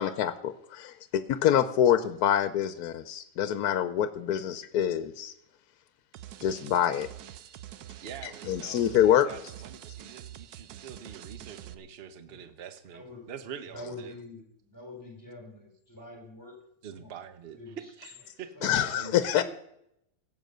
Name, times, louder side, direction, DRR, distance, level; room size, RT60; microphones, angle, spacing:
voice 1, 0.0-5.3 6.4-7.1 8.2-9.3 18.6-19.4, left 10 dB, 85° left, 12 dB, 1.2 m, -26 dB
sound 1, 6.1-11.7, right 12 dB, 90° right, 1.2 m, -46 dB
voice 2, 8.0-14.1 16.8-19.3, right 8 dB, 45° right, 10 dB, 1.0 m, -45 dB
voice 3, 12.9-13.2 13.7-16.6 16.9-17.2 17.5-17.9 18.5-18.9 19.2-19.4, left 2 dB, 10° left, 1 dB, 3.5 m, -46 dB
16.0 x 7.8 x 6.6 m, 0.78 s
omnidirectional pair, 1.6 m